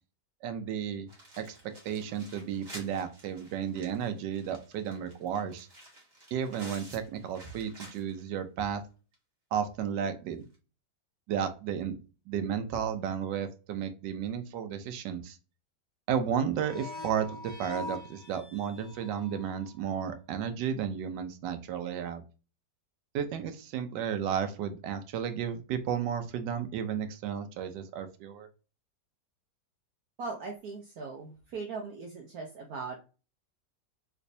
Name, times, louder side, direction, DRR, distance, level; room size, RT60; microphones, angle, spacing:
voice 1, 0.4-1.1 1.4-1.5 1.8-5.7 6.3-8.8 9.5-10.4 11.3-12.0 12.3-15.4 16.1-22.2 23.1-28.5, right 8 dB, 80° right, 8 dB, 1.2 m, -33 dB
sound 1, 1.1-8.3 8.7-8.8 9.1-9.2 10.4-10.5, right 1 dB, 30° right, 1.2 m, -51 dB
sound 2, 16.6-19.8, left 3 dB, 5° left, 1.6 m, -43 dB
voice 2, 30.2-33.0, right 4 dB, 65° right, 1 dB, 1.0 m, -39 dB
3.3 x 3.1 x 2.6 m, 0.33 s
omnidirectional pair, 1.9 m